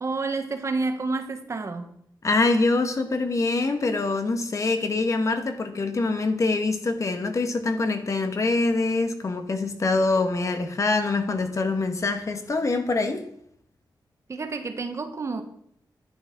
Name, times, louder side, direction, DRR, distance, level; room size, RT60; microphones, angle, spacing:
voice 1, 0.0-1.9 14.3-15.4, right 3 dB, 40° right, 7 dB, 1.5 m, -29 dB
voice 2, 2.2-13.3, left 3 dB, 45° left, 7 dB, 1.6 m, -24 dB
10.5 x 10.0 x 6.0 m, 0.69 s
wide cardioid pair, 130°, 8 cm